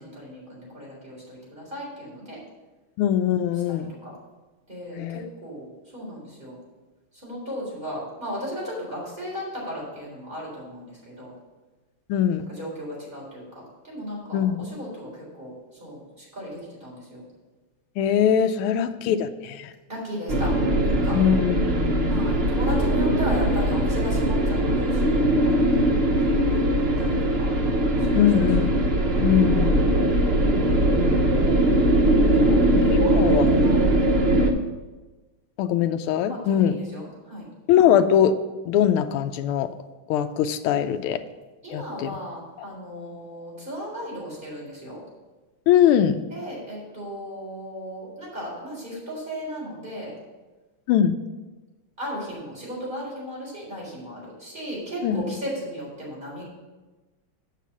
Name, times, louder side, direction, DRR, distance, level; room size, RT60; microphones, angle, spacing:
voice 1, 0.0-2.4 3.5-4.1 4.7-6.6 7.1-11.3 12.5-17.2 18.5-18.7 19.9-20.5 20.8-21.2 22.1-25.9 26.2-27.5 28.0-28.3 28.7-28.9 31.8-32.1 32.4-33.3 33.6-33.9 36.3-37.5 40.7-40.9 41.6-45.0 46.3-50.1 52.0-56.4, equal, 20° right, -5 dB, 3.9 m, -36 dB
voice 2, 3.0-3.9 5.0-5.2 12.1-12.5 14.3-14.6 18.0-19.7 21.1-22.2 28.1-28.7 29.2-29.8 30.9-31.7 32.7-33.7 34.3-34.4 35.6-36.8 37.7-38.4 38.7-39.7 40.1-41.2 41.7-42.2 45.7-46.2 50.9-51.1 55.0-55.2, left 9 dB, 80° left, 8 dB, 1.5 m, -22 dB
sound 1, 20.3-34.5, right 1 dB, 75° right, 0.5 m, -21 dB
8.2 x 5.8 x 7.3 m, 1.2 s
omnidirectional pair, 2.4 m